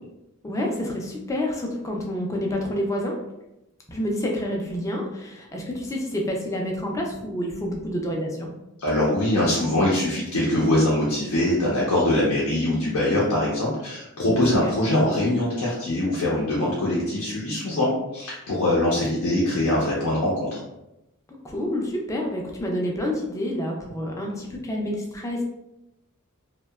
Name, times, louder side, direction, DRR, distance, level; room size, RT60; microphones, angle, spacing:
voice 1, 0.4-3.1 3.9-8.5 14.2-14.7 21.4-25.4, left 1 dB, 15° left, 0 dB, 0.4 m, -28 dB
voice 2, 8.8-20.6, left 1 dB, 80° left, -6 dB, 0.6 m, -23 dB
2.7 x 2.1 x 2.2 m, 0.91 s
head